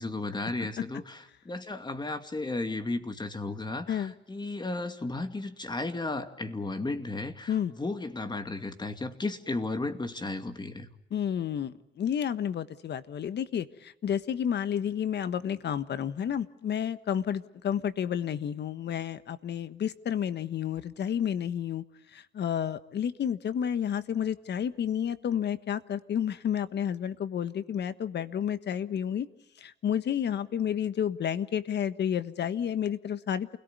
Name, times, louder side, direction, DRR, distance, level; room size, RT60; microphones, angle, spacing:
voice 1, 0.0-10.9, left 2 dB, 20° left, 8 dB, 2.3 m, -34 dB
voice 2, 11.1-21.8 22.1-29.3 29.6-33.6, left 9 dB, 60° left, 13 dB, 1.4 m, -31 dB
28.5 x 18.0 x 9.5 m, 0.80 s
cardioid pair, 90°, 20 cm